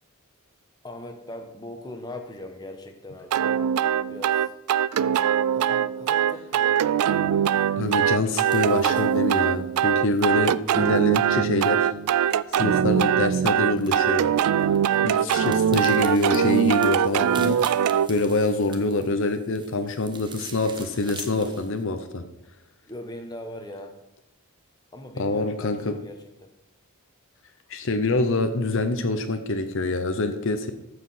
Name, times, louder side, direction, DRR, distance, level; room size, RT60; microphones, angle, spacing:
voice 1, 0.8-3.6 4.1-4.5 5.5-7.6 10.4-10.6 14.9-15.6 22.8-24.0 24.9-26.5, left 1 dB, 20° left, 4 dB, 1.1 m, -41 dB
sound 1, 3.3-18.1, right 9 dB, 85° right, 0.3 m, -22 dB
sound 2, 7.5-21.8, right 5 dB, 20° right, 0.9 m, -46 dB
voice 2, 7.8-11.9 12.2-14.3 15.0-17.6 18.1-22.2 25.2-26.0 27.7-30.7, left 2 dB, 60° left, 8 dB, 0.7 m, -25 dB
14.0 x 4.9 x 5.7 m, 0.87 s
head